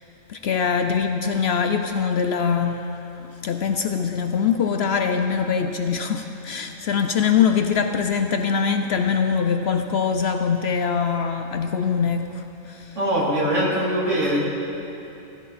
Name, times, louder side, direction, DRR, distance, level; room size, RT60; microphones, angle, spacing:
voice 1, 0.3-13.0, left 6 dB, 65° left, 6 dB, 0.7 m, -23 dB
voice 2, 13.0-14.4, equal, 65° right, -5 dB, 2.8 m, -22 dB
15.0 x 15.0 x 4.2 m, 2.9 s
omnidirectional pair, 1.4 m